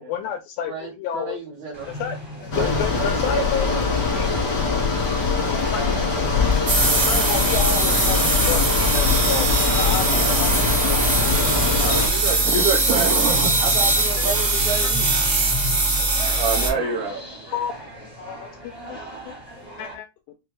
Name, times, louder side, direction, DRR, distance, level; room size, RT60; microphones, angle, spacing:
voice 1, 0.0-1.4 1.9-3.7 4.1-4.3 5.7-5.8 7.0-9.5 9.7-10.5 10.8-11.1 12.3-12.4 14.2-14.3 17.5-17.7 18.2-19.0 19.3-19.4 19.8-20.1, left 8 dB, 85° left, 2.0 m, -30 dB
voice 2, 0.7-1.9 2.6-3.9 9.9-10.0 13.6-15.1, right 4 dB, 75° right, 1.7 m, -31 dB
sound 1, 1.7-19.9, left 1 dB, 20° right, 0.6 m, -36 dB
Bicycle, 2.5-12.1, left 4 dB, 65° left, 1.0 m, -22 dB
sound 2, 6.7-16.7, right 2 dB, 55° right, 1.1 m, -21 dB
voice 3, 11.8-13.6 16.3-17.5 18.9-19.0 19.3-19.4, right 5 dB, 90° right, 1.3 m, -26 dB
6.3 x 2.2 x 3.1 m
omnidirectional pair, 4.6 m